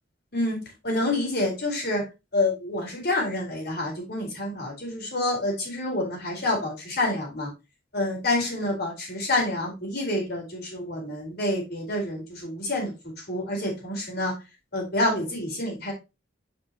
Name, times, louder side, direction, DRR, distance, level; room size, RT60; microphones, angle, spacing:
voice 1, 0.8-2.0 2.3-7.5 7.9-12.9 13.3-14.3 14.7-15.9, left 2 dB, 60° left, 0 dB, 4.3 m, -28 dB
9.6 x 5.6 x 3.0 m, 0.25 s
head